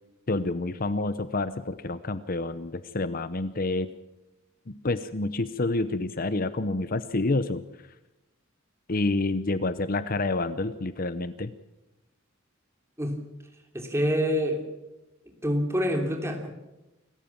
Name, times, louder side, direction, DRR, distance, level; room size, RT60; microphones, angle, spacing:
voice 1, 0.3-3.9 4.7-7.6 8.9-11.5, left 2 dB, 45° left, 13 dB, 0.8 m, -28 dB
voice 2, 13.7-14.6 15.4-16.5, equal, 15° right, 4 dB, 3.0 m, -26 dB
27.5 x 15.0 x 7.3 m, 1.0 s
head